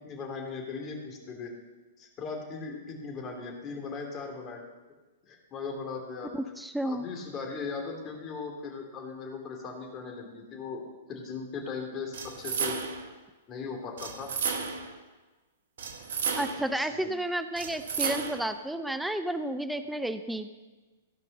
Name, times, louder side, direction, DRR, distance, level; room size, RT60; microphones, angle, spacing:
voice 1, 0.0-1.5 2.0-4.6 5.3-6.3 6.8-10.8 11.1-12.7 13.5-14.3 16.7-17.1, left 4 dB, 30° left, 2 dB, 2.7 m, -38 dB
voice 2, 6.3-7.0 16.4-20.5, right 1 dB, 5° right, 10 dB, 0.5 m, -31 dB
sound 1, 12.1-13.1 14.0-15.0 15.8-16.8 17.6-18.5, right 5 dB, 70° right, 1.2 m, -33 dB
15.5 x 5.4 x 6.7 m, 1.2 s
hypercardioid pair, 115°, 0 cm